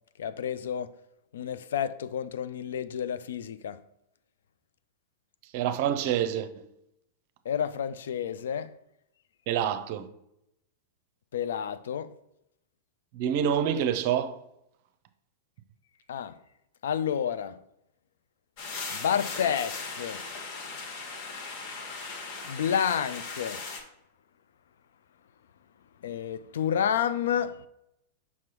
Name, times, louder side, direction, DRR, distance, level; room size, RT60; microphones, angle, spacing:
voice 1, 0.2-0.9 1.3-3.8 7.5-8.7 11.3-12.1 16.1-16.4 16.8-17.6 18.9-20.2 22.5-23.6 26.0-27.7, left 8 dB, 65° left, 0.3 m, -30 dB
voice 2, 5.5-6.7 9.5-10.1 13.1-14.4, right 9 dB, 50° right, 0.5 m, -27 dB
sound 1, 18.6-23.8, left 4 dB, 50° left, 1.2 m, -38 dB
6.0 x 5.8 x 2.9 m
figure-of-eight pair, 100°, 0 cm